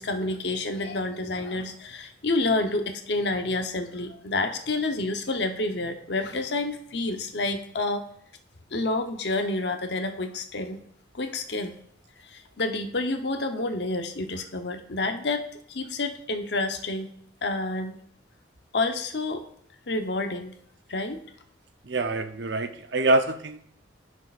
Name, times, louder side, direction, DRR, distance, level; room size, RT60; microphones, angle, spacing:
voice 1, 0.0-8.0 8.7-10.8 11.1-11.7 12.2-17.1 17.4-18.0 18.7-19.4 19.9-20.5 20.9-21.2, left 2 dB, 65° left, 6 dB, 0.9 m, -29 dB
voice 2, 21.8-23.6, right 2 dB, 70° right, 8 dB, 0.7 m, -25 dB
16.5 x 6.4 x 2.5 m, 0.66 s
head